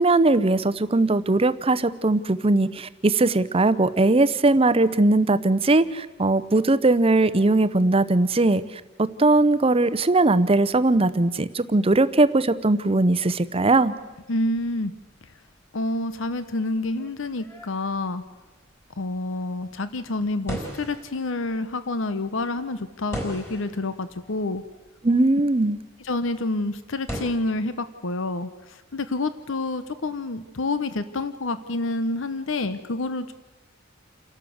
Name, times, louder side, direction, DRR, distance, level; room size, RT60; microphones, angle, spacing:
voice 1, 0.0-8.6 9.0-13.9 25.0-25.8, right 2 dB, 30° right, 13 dB, 0.7 m, -20 dB
sound 1, 14.0-27.3, equal, 10° left, 4.0 m, -41 dB
voice 2, 14.3-14.9 15.7-18.2 19.0-24.6 26.0-33.3, left 2 dB, 70° left, 12 dB, 0.9 m, -28 dB
29.0 x 12.0 x 7.8 m, 1.2 s
head